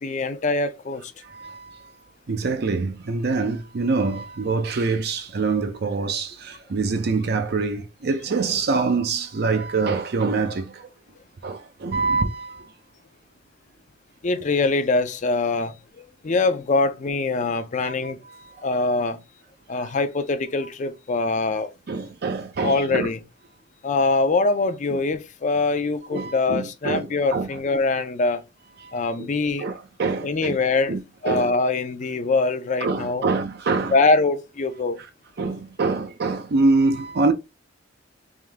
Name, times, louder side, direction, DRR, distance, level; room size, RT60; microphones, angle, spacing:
voice 1, 0.0-1.0 14.2-18.2 18.6-19.2 19.7-21.7 22.6-23.2 23.8-28.4 28.9-29.7 30.2-31.0 31.2-33.2 33.9-35.0, left 3 dB, 40° left, 0.5 m, -23 dB
voice 2, 1.2-1.8 2.3-10.9 11.4-12.6 17.8-17.9 19.8-19.9 21.9-23.1 24.9-25.0 26.1-27.5 29.2-29.3 29.6-30.6 30.9-31.0 31.3-31.5 32.8-33.9 35.4-37.3, right 4 dB, 55° right, 0.5 m, -25 dB
3.6 x 2.7 x 3.3 m
head